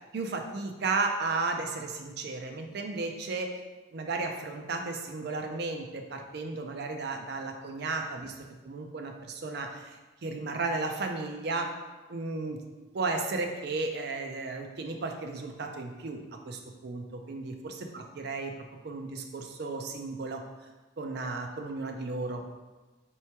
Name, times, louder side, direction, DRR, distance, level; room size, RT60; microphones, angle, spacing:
voice 1, 0.1-3.5 3.9-10.0 10.2-11.7 12.1-12.6 12.9-16.2 16.4-18.5 18.8-20.4 21.0-22.4, right 3 dB, 55° right, 4 dB, 0.4 m, -34 dB
3.3 x 3.1 x 4.4 m, 1.2 s
head